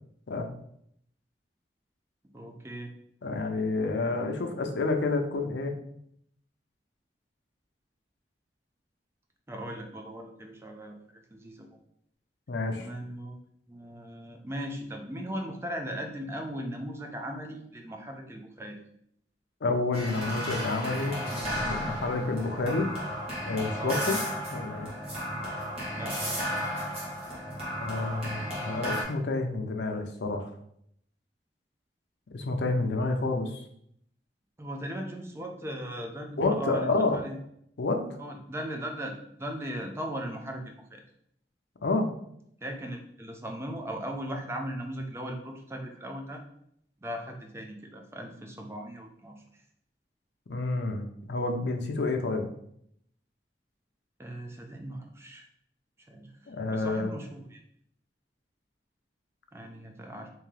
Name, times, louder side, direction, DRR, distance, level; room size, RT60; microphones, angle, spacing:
voice 1, 2.3-2.9 9.5-11.7 12.8-13.4 13.7-18.8 23.8-24.1 25.9-26.6 34.6-37.4 38.2-41.0 42.6-46.4 47.0-49.6 54.2-55.5 56.0-57.6 59.5-60.3, right 1 dB, 15° right, 3 dB, 0.4 m, -38 dB
voice 2, 3.2-5.7 12.5-12.9 19.6-21.2 21.5-22.9 23.5-24.2 24.5-24.9 27.8-30.5 32.3-33.6 36.4-37.2 37.8-38.0 41.8-42.1 50.5-52.5 56.5-57.1, left 3 dB, 80° left, 4 dB, 0.5 m, -29 dB
sound 1, 19.9-29.0, equal, 35° right, 1.2 m, -34 dB
3.6 x 2.8 x 3.2 m, 0.71 s
head